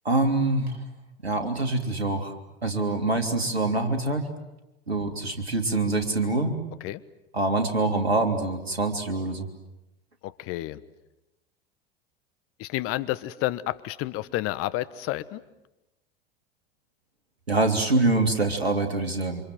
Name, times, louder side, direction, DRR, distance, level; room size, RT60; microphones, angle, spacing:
voice 1, 0.0-0.8 1.2-2.3 2.6-4.2 4.9-6.5 7.3-9.5 17.5-19.4, right 2 dB, 90° right, 6 dB, 3.1 m, -25 dB
voice 2, 10.2-10.8 12.6-15.4, left 16 dB, 50° left, 16 dB, 1.2 m, -30 dB
28.0 x 26.0 x 7.8 m, 0.95 s
hypercardioid pair, 80°, 30 cm